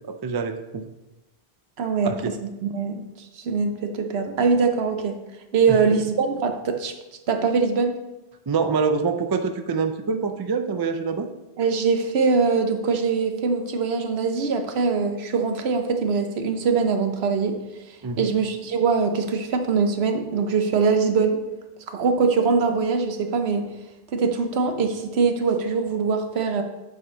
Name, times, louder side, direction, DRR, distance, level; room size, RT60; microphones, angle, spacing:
voice 1, 0.1-0.8 2.0-2.3 5.7-5.8 8.5-11.3 18.0-18.3, right 5 dB, 40° right, 8 dB, 0.3 m, -25 dB
voice 2, 1.8-2.1 2.4-5.2 5.5-6.9 7.3-7.9 11.6-17.6 18.2-21.4 21.9-23.7 24.1-26.6, right 5 dB, 75° right, 6 dB, 1.1 m, -22 dB
7.7 x 5.9 x 3.9 m, 1.0 s
omnidirectional pair, 1.1 m